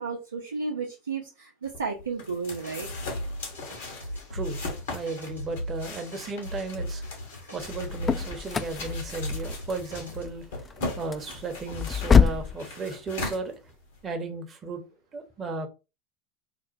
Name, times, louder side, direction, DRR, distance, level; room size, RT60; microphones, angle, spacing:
voice 1, 0.0-2.9, right 4 dB, 85° right, 0.6 m, -33 dB
sound 1, 1.6-14.1, left 2 dB, 70° left, 1.2 m, -39 dB
sound 2, 2.5-10.3, equal, 90° left, 1.3 m, -38 dB
voice 2, 3.8-13.6 14.0-14.8 15.1-15.7, right 3 dB, 30° right, 0.8 m, -35 dB
sound 3, 7.6-12.6, left 6 dB, 25° left, 0.3 m, -25 dB
2.9 x 2.1 x 4.1 m
figure-of-eight pair, 80°, 0 cm